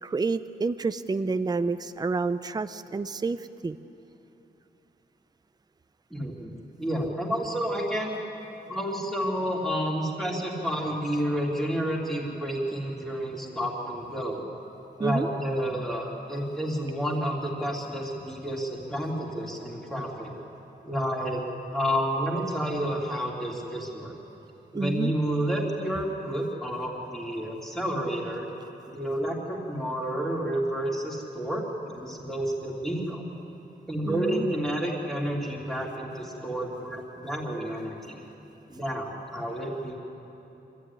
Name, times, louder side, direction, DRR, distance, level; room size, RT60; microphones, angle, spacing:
voice 1, 0.0-3.8 15.0-15.3 24.7-25.1 34.1-34.5, right 4 dB, 20° right, 12 dB, 0.5 m, -29 dB
voice 2, 6.1-6.5 6.8-8.1 8.7-14.4 15.0-20.3 20.8-21.4 21.7-24.1 24.7-28.5 28.9-33.2 33.9-38.2 38.7-39.9, equal, ahead, -2 dB, 3.1 m, -30 dB
25.5 x 14.0 x 9.8 m, 3.0 s
wide cardioid pair, 175°, 18 cm